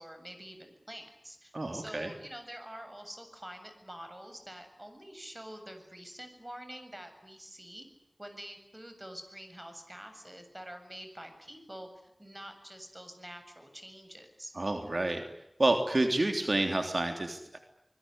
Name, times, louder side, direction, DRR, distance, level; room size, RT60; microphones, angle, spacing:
voice 1, 0.0-7.9 8.2-14.5, equal, 25° right, 7 dB, 7.6 m, -47 dB
voice 2, 1.5-2.1 14.5-15.2 15.6-17.6, right 2 dB, 75° right, 5 dB, 3.2 m, -29 dB
26.0 x 21.5 x 10.0 m, 0.86 s
wide cardioid pair, 45°, 0 cm